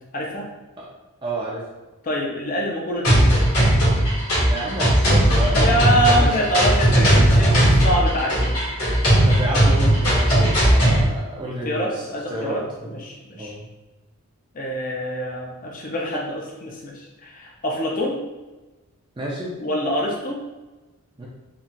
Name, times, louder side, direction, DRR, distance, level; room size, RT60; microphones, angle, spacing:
voice 1, 0.1-0.5 2.0-3.3 5.5-8.6 11.6-13.6 14.5-18.2 19.6-20.4, equal, 35° left, -1 dB, 0.5 m, -25 dB
voice 2, 1.2-1.6 4.5-6.5 9.2-13.0 13.3-13.7 19.2-19.5 21.2-21.3, right 1 dB, 20° right, -5 dB, 0.4 m, -30 dB
sound 1, 3.0-11.0, right 1 dB, 80° left, 1.5 m, -17 dB
3.9 x 2.3 x 2.2 m, 1.1 s
head